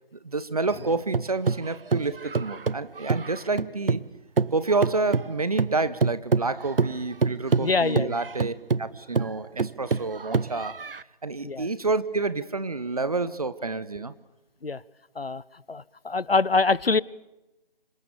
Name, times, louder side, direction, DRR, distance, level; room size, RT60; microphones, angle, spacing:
voice 1, 0.2-4.0 4.5-10.8 11.2-14.1, right 3 dB, 40° right, 15 dB, 1.1 m, -29 dB
Single Drum Kids in BG, 0.7-4.1 4.4-11.0, right 4 dB, 70° right, 0.8 m, -27 dB
voice 2, 7.6-8.1 11.4-11.7 14.6-14.8 15.2-15.4 15.7-17.0, left 3 dB, 90° left, 22 dB, 1.0 m, -24 dB
26.5 x 21.5 x 7.1 m, 0.95 s
figure-of-eight pair, 165°, 29 cm